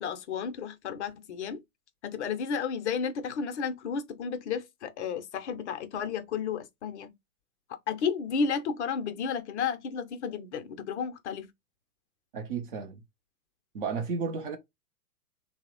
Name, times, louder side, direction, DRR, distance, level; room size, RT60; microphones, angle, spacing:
voice 1, 0.0-1.6 2.0-7.1 7.9-11.5, left 6 dB, 45° left, 0.5 m, -32 dB
voice 2, 12.3-13.0 13.7-14.6, right 5 dB, 35° right, 0.5 m, -33 dB
2.9 x 2.0 x 2.9 m
hypercardioid pair, 120°, 49 cm